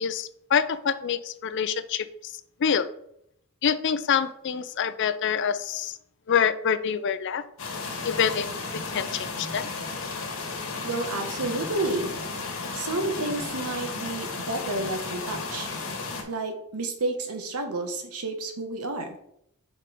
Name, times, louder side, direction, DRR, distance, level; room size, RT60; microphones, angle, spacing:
voice 1, 0.0-2.3 2.6-2.9 3.6-6.0 6.3-7.4 8.0-8.5 8.7-9.7, left 7 dB, 55° left, 12 dB, 0.4 m, -26 dB
sound 1, 7.6-16.2, left 4 dB, 70° left, 1.4 m, -34 dB
voice 2, 10.8-12.1 12.7-15.7 16.3-19.2, right 2 dB, 85° right, 6 dB, 1.1 m, -30 dB
5.3 x 4.4 x 4.9 m, 0.75 s
head